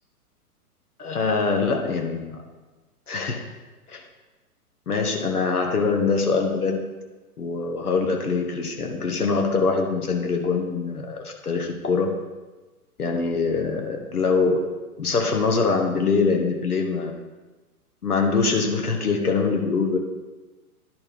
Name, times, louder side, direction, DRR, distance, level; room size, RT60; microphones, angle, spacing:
voice 1, 1.0-2.4 3.1-3.4 3.9-4.0 4.9-6.8 7.4-12.1 13.0-14.6 15.0-17.1 18.0-20.0, left 4 dB, 70° left, 2 dB, 1.2 m, -23 dB
11.0 x 4.4 x 5.0 m, 1.2 s
figure-of-eight pair, 115°, 46 cm